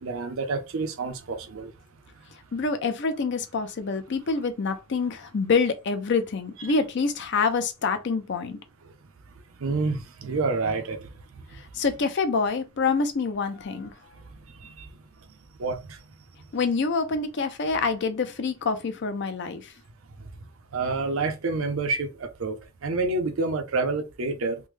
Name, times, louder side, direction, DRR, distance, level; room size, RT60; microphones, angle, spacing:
voice 1, 0.0-1.7 9.6-11.0 15.6-15.8 20.7-22.6 22.8-24.6, right 3 dB, 60° right, 0.5 m, -28 dB
voice 2, 2.5-8.6 11.7-13.9 16.5-19.7, left 4 dB, 50° left, 0.5 m, -26 dB
3.3 x 2.1 x 3.1 m
head